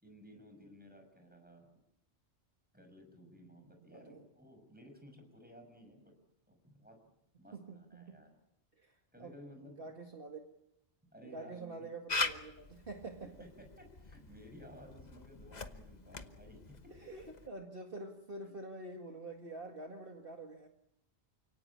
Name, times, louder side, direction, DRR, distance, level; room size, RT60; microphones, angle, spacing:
voice 1, 0.0-1.7 2.7-6.1 6.5-7.0 7.4-8.3 9.1-9.8 11.1-11.9 13.4-16.6, equal, 10° right, 4 dB, 6.5 m, -56 dB
voice 2, 7.5-8.2 8.8-9.4 9.6-10.4 11.2-13.5 16.9-20.7, right 2 dB, 50° right, 2 dB, 2.2 m, -47 dB
Camera, 12.1-17.5, left 3 dB, 40° left, 1.3 m, -42 dB
29.0 x 18.0 x 8.6 m, 0.82 s
omnidirectional pair, 1.2 m